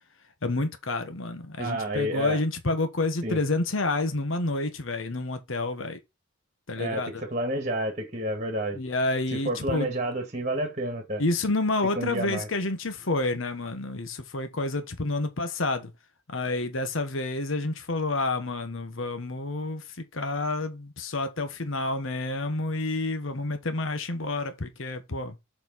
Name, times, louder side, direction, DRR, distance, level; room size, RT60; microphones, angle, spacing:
voice 1, 0.4-6.0 6.7-7.2 8.7-9.9 11.2-15.9 16.3-25.3, left 2 dB, 70° left, 1.1 m, -29 dB
voice 2, 1.6-2.4 3.2-3.4 6.8-8.8 9.3-11.2 11.9-12.5, right 1 dB, 35° right, 1.5 m, -30 dB
7.1 x 4.3 x 4.0 m
head